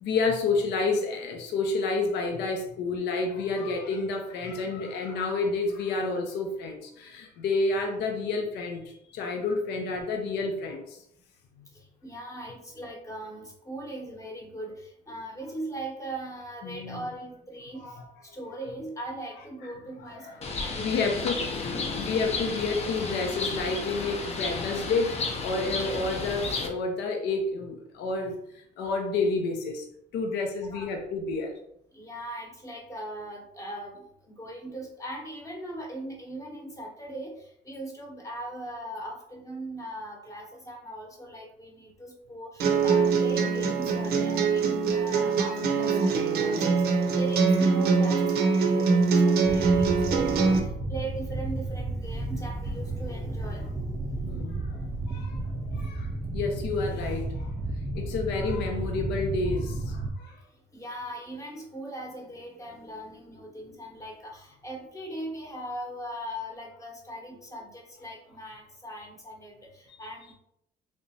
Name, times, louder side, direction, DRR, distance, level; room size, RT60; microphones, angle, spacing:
voice 1, 0.0-11.0 16.6-17.0 17.8-18.1 20.2-20.4 20.8-21.3 21.9-29.8 30.1-31.5 54.2-54.8 55.1-55.4 55.7-57.5 57.9-60.3, left 3 dB, 80° left, 3 dB, 0.6 m, -30 dB
voice 2, 11.7-21.1 21.5-21.6 30.7-30.9 31.9-54.6 60.7-70.3, right 1 dB, 20° left, 0 dB, 0.9 m, -40 dB
Bird, 20.4-26.7, left 3 dB, 40° left, 0.6 m, -33 dB
sound 1, 42.6-50.6, right 4 dB, 70° right, 0.6 m, -23 dB
sound 2, 49.4-60.1, right 2 dB, 15° right, 0.4 m, -33 dB
3.4 x 2.9 x 2.7 m, 0.74 s
cardioid pair, 110°, 17 cm